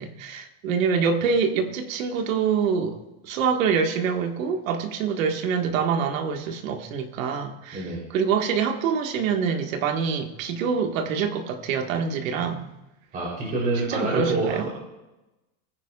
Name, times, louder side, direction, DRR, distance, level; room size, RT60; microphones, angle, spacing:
voice 1, 0.0-3.0 3.2-12.7 13.8-14.7, right 6 dB, 80° right, 5 dB, 1.8 m, -25 dB
voice 2, 13.1-14.8, right 2 dB, 20° right, -6 dB, 3.5 m, -27 dB
21.0 x 10.0 x 2.4 m, 1.0 s
supercardioid pair, 170°, 40 cm